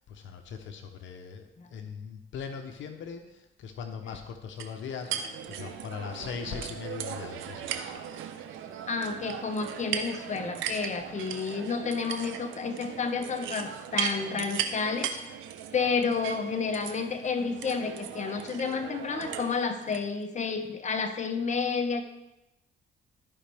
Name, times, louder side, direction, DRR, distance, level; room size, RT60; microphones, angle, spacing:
voice 1, 0.0-7.9 11.0-11.4, left 6 dB, 75° left, 6 dB, 0.9 m, -40 dB
sound 1, 4.6-20.0, right 8 dB, 90° right, 0.7 m, -37 dB
voice 2, 8.9-15.1 15.7-22.0, left 5 dB, 35° left, 6 dB, 1.0 m, -30 dB
13.5 x 5.2 x 3.4 m, 0.92 s
cardioid pair, 90°, 20 cm